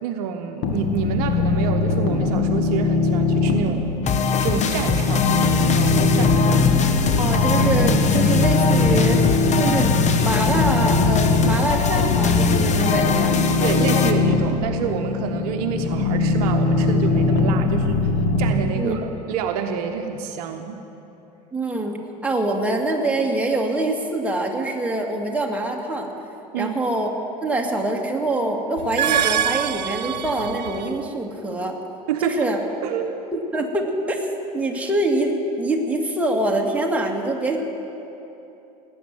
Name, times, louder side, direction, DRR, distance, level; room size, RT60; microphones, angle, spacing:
voice 1, 0.0-3.8 4.4-6.6 13.6-18.1 18.4-20.8 26.5-26.7 32.1-32.5 32.8-33.2, right 7 dB, 65° right, 6 dB, 0.9 m, -28 dB
sound 1, 0.6-18.5, left 3 dB, 55° left, 2.0 m, -21 dB
sound 2, 4.0-14.1, left 6 dB, 35° left, 1.1 m, -23 dB
voice 2, 7.2-9.9 10.2-13.4 18.7-19.0 21.5-22.0 22.2-26.1 26.5-27.1 27.4-31.8 32.2-32.6 33.3-34.2 34.5-37.6, right 2 dB, 5° right, 0 dB, 2.2 m, -24 dB
sound 3, 28.8-31.0, right 10 dB, 85° right, 0.4 m, -25 dB
18.5 x 8.9 x 7.9 m, 3.0 s
hypercardioid pair, 75°, 21 cm